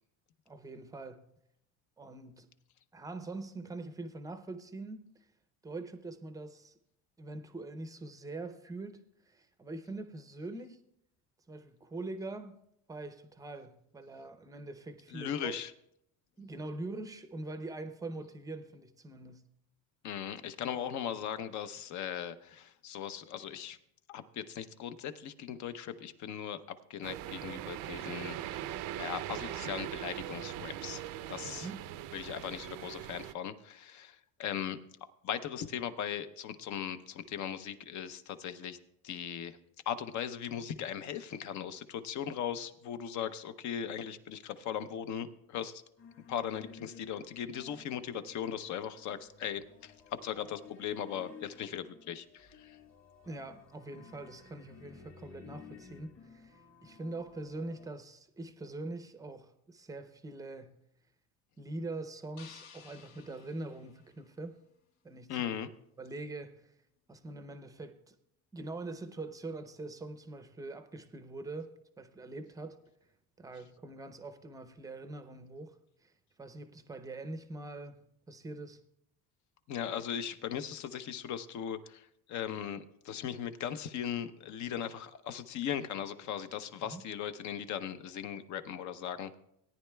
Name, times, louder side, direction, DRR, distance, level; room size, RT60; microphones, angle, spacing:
voice 1, 0.5-1.3 2.0-2.5 2.9-5.1 5.6-6.7 7.2-9.0 9.2-10.8 11.5-12.6 12.9-15.6 16.4-19.5 31.5-31.8 53.3-60.8 61.6-64.6 65.0-65.5 66.0-66.7 67.1-68.1 68.5-72.8 73.4-75.8 76.0-76.1 76.4-78.0 78.3-78.8 86.8-87.0, right 2 dB, 10° right, 0.6 m, -43 dB
voice 2, 15.1-15.7 20.0-23.8 24.1-26.6 26.9-28.7 29.0-31.0 31.3-31.7 32.1-34.8 35.2-38.8 39.0-39.6 39.9-45.8 46.3-52.8 65.3-65.7 79.7-89.3, left 9 dB, 50° left, 0.8 m, -38 dB
sound 1, 27.0-33.3, right 12 dB, 60° right, 0.5 m, -41 dB
sound 2, 46.0-57.9, left 6 dB, 35° left, 1.5 m, -55 dB
sound 3, 62.4-64.6, left 7 dB, 85° left, 1.4 m, -56 dB
18.0 x 9.9 x 2.3 m
cardioid pair, 135°, 37 cm